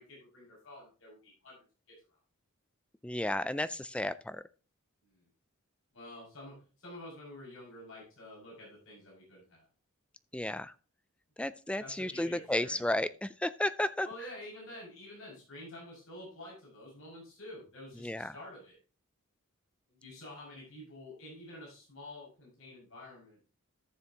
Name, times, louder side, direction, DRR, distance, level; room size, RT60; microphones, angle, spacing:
voice 1, 0.0-1.6 1.9-2.0 5.0-5.1 5.9-9.7 11.8-12.8 14.0-18.8 19.9-23.5, left 1 dB, 65° left, -4 dB, 6.1 m, -49 dB
voice 2, 3.0-4.4 10.3-10.7 11.4-14.1 18.0-18.3, left 1 dB, 5° left, 15 dB, 0.3 m, -33 dB
14.0 x 7.1 x 2.9 m, 0.37 s
head